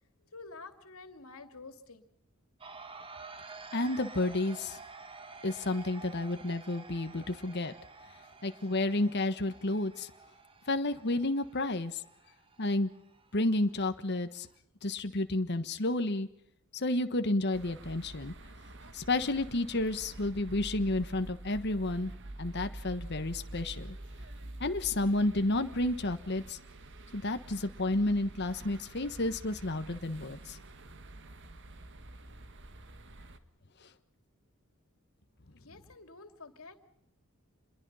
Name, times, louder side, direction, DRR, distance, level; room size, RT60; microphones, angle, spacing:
voice 1, 0.3-2.0 35.5-36.8, left 3 dB, 90° left, 9 dB, 2.7 m, -49 dB
sound 1, 2.6-14.6, right 4 dB, 25° right, 1.7 m, -50 dB
voice 2, 3.7-4.8 5.4-7.7 8.4-10.1 10.7-12.0 12.6-12.9 13.3-14.5 14.8-16.3 16.7-18.3 18.9-22.1 22.4-24.0 24.6-26.6 27.1-30.6, left 2 dB, 55° left, 8 dB, 1.4 m, -31 dB
sound 2, 17.5-33.4, right 1 dB, 60° right, 1.8 m, -47 dB
27.5 x 22.0 x 5.6 m, 0.75 s
head